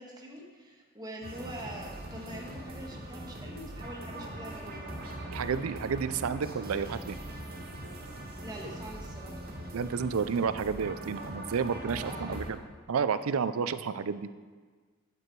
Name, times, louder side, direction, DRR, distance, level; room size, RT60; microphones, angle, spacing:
voice 1, 0.0-4.9 8.4-9.4 11.9-12.5, right 1 dB, 20° right, -1 dB, 1.5 m, -44 dB
sound 1, 1.2-12.5, right 1 dB, 45° right, 1.6 m, -41 dB
voice 2, 5.3-7.2 9.7-12.6 12.9-14.3, right 6 dB, 85° right, 13 dB, 0.5 m, -31 dB
9.5 x 8.5 x 4.6 m, 1.5 s
head